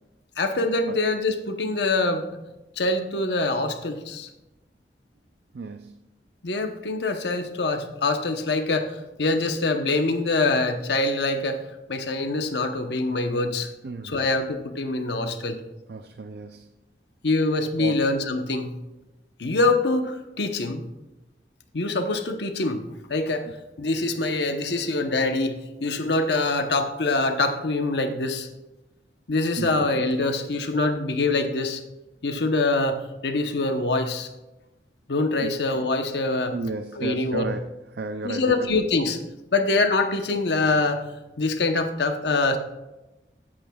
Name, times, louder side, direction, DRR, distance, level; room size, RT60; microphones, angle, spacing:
voice 1, 0.4-2.3 2.8-4.3 6.4-11.6 11.9-13.7 14.0-15.6 17.2-18.8 19.4-20.8 21.7-22.8 23.1-23.5 23.8-28.5 29.3-31.8 32.2-34.3 35.1-36.6 36.9-37.5 38.2-39.2 39.5-41.0 41.4-42.6, left 2 dB, 80° left, 6 dB, 0.9 m, -24 dB
voice 2, 5.5-5.9 13.8-14.2 15.9-16.7 17.8-18.0 29.6-29.9 35.4-35.5 36.5-37.6 38.0-38.5, right 3 dB, 65° right, 7 dB, 0.5 m, -32 dB
16.5 x 8.6 x 2.3 m, 1.0 s
head